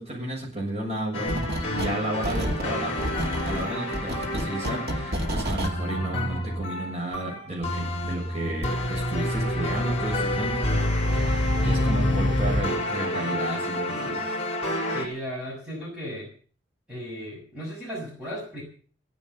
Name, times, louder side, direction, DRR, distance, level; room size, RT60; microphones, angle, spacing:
voice 1, 0.0-10.9 11.1-14.2, right 1 dB, 35° right, -2 dB, 7.1 m, -33 dB
sound 1, 1.1-15.0, left 1 dB, 35° left, 4.7 m, -28 dB
sound 2, 1.3-2.0 2.2-5.8, equal, 55° right, 2.3 m, -30 dB
voice 2, 14.9-16.3 16.9-18.6, equal, 5° right, -6 dB, 7.3 m, -35 dB
17.0 x 9.9 x 8.2 m, 0.42 s
head